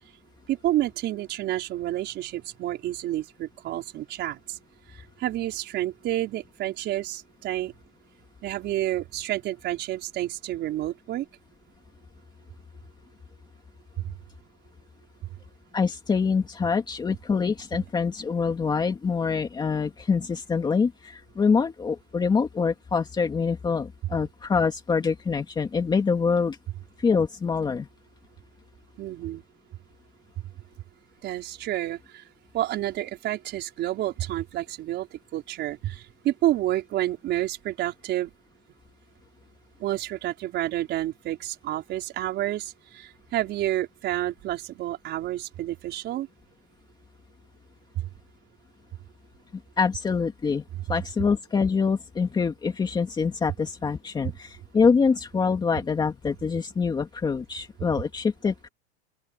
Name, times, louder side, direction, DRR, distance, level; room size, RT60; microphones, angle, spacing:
voice 1, 0.5-4.6 5.2-7.7 8.4-11.3 14.0-14.1 29.0-29.4 31.2-32.2 32.5-38.3 39.8-46.3 48.0-48.1, right 14 dB, 30° right, 5.1 m, -29 dB
voice 2, 15.7-26.6 27.0-27.9 49.8-50.6 50.9-58.7, left 5 dB, 15° left, 2.4 m, -25 dB
open air
supercardioid pair, 160°, 33 cm